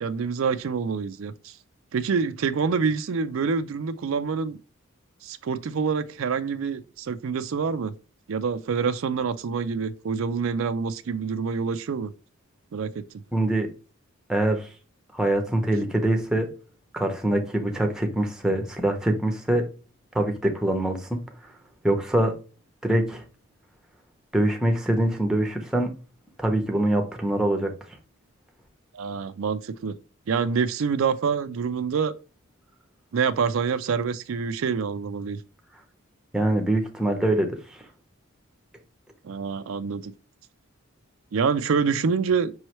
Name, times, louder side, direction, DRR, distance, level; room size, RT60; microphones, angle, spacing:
voice 1, 0.0-1.6 1.9-4.6 5.2-7.9 8.3-12.1 12.7-13.2 28.9-30.0 30.3-32.1 33.1-35.4 39.2-40.1 41.3-42.5, right 5 dB, 75° right, 0.4 m, -26 dB
voice 2, 13.3-13.7 14.3-14.7 15.1-16.5 16.9-19.7 20.1-21.2 21.8-22.3 22.8-23.2 24.3-25.9 26.4-27.7 36.3-37.5, right 1 dB, 5° right, 0.7 m, -24 dB
5.4 x 3.1 x 2.9 m
head